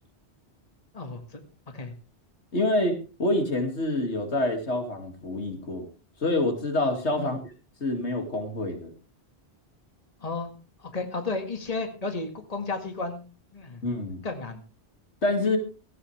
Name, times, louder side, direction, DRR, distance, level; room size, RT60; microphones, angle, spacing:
voice 1, 0.9-1.4 1.7-1.9 7.2-7.4 10.2-10.5 10.8-13.8 14.2-14.6, left 3 dB, 35° left, 5 dB, 2.0 m, -33 dB
voice 2, 2.5-5.9 6.2-7.5 7.8-8.9 13.8-14.2 15.2-15.6, left 2 dB, 75° left, 5 dB, 2.7 m, -27 dB
17.5 x 14.5 x 3.3 m, 0.33 s
omnidirectional pair, 1.1 m